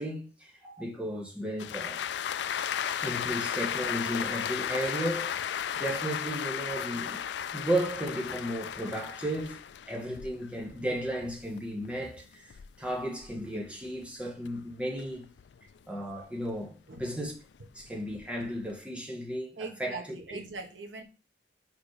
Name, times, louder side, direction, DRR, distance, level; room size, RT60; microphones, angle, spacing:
voice 1, 0.0-2.0 2.9-5.4 5.8-7.2 7.5-15.3 15.9-17.3 17.7-20.4, right 1 dB, 5° right, 1.5 m, -34 dB
sound 1, 1.6-14.0 14.4-16.6 17.0-18.7, left 9 dB, 65° left, 0.3 m, -35 dB
voice 2, 19.6-21.0, right 3 dB, 80° right, 1.3 m, -41 dB
5.2 x 4.6 x 5.0 m
head